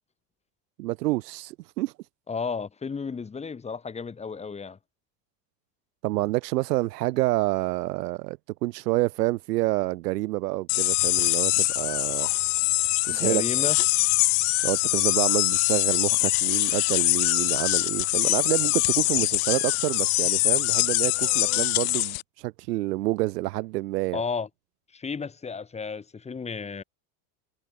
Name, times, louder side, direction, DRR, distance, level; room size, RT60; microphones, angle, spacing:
voice 1, 0.8-1.9 6.0-12.3 13.0-13.7 14.6-24.2, right 19 dB, 85° right, 2.8 m, -28 dB
voice 2, 2.3-4.8 13.1-13.8 24.1-24.5 24.9-26.8, left 5 dB, 15° left, 3.0 m, -33 dB
sound 1, 10.7-22.2, left 26 dB, 65° left, 1.6 m, -23 dB
supercardioid pair, 155°, 47 cm